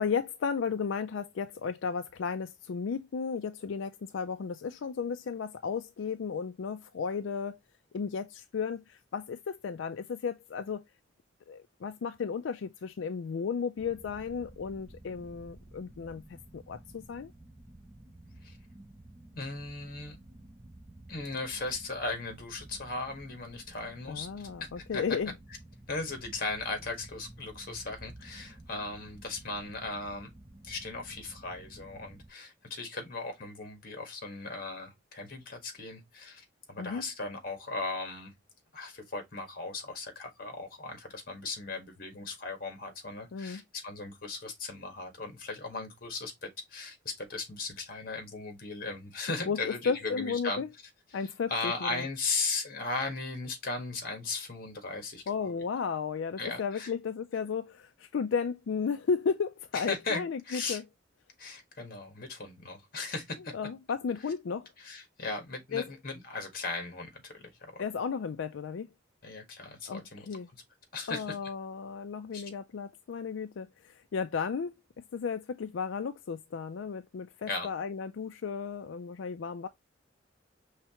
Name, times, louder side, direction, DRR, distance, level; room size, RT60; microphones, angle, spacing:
voice 1, 0.0-7.6 7.9-10.8 11.5-17.3 24.1-25.3 36.8-37.1 43.3-43.6 49.5-50.7 51.1-52.0 55.3-60.8 63.5-64.7 65.7-65.8 67.8-68.9 69.9-70.5 71.1-74.7 75.1-79.7, left 6 dB, 85° left, 0.4 m, -34 dB
sound 1, 13.8-32.3, right 1 dB, 15° right, 0.5 m, -52 dB
voice 2, 19.3-20.2 21.1-24.5 24.8-25.0 25.9-30.3 30.6-38.3 38.7-50.6 51.1-51.2 51.5-55.5 56.4-56.9 59.7-60.8 61.4-63.5 64.8-67.8 69.2-70.3 70.9-71.3 72.3-72.4 77.5-77.7, left 3 dB, 50° left, 1.5 m, -37 dB
5.6 x 3.3 x 2.9 m
head